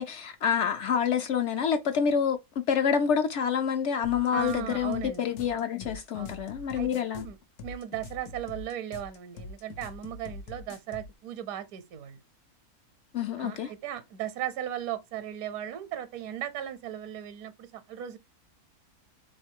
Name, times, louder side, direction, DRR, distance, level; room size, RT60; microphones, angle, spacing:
voice 1, 0.0-7.3 13.1-13.7, left 7 dB, 65° left, 0.7 m, -27 dB
sound 1, 4.0-11.1, left 3 dB, 90° left, 1.3 m, -43 dB
voice 2, 4.3-5.3 6.1-6.4 6.8-6.9 7.1-7.4 7.6-12.2 13.4-18.2, right 11 dB, 75° right, 1.1 m, -37 dB
3.6 x 3.2 x 4.5 m
omnidirectional pair, 1.6 m